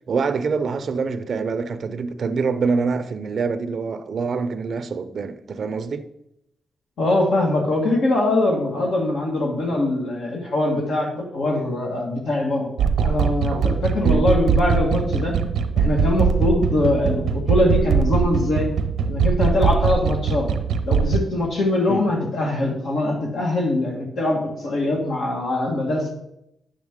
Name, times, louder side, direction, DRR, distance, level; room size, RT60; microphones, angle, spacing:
voice 1, 0.1-6.1 14.0-14.3 21.9-22.0, right 4 dB, 60° right, 0.5 m, -25 dB
voice 2, 7.0-12.7 13.0-15.3 15.7-18.7 19.1-20.5 20.9-26.1, left 2 dB, 80° left, 1.6 m, -22 dB
sound 1, 12.8-21.2, right 6 dB, 90° right, 0.8 m, -21 dB
9.3 x 7.2 x 3.6 m
cardioid pair, 90°, 0 cm